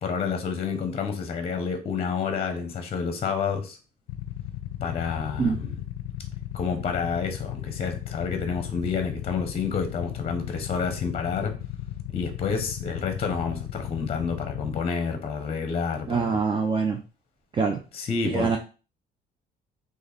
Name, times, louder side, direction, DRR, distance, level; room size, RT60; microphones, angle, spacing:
voice 1, 0.0-3.8 4.8-5.8 6.5-11.5 12.1-16.4 17.9-18.6, left 5 dB, 35° left, 6 dB, 0.7 m, -29 dB
Motorcycle / Idling, 4.1-14.8, left 13 dB, 85° left, 0.4 m, -36 dB
voice 2, 16.1-17.0 17.5-17.8 18.2-18.6, right 5 dB, 30° right, 4 dB, 0.5 m, -24 dB
3.2 x 2.5 x 4.0 m, 0.34 s
cardioid pair, 110°, 17 cm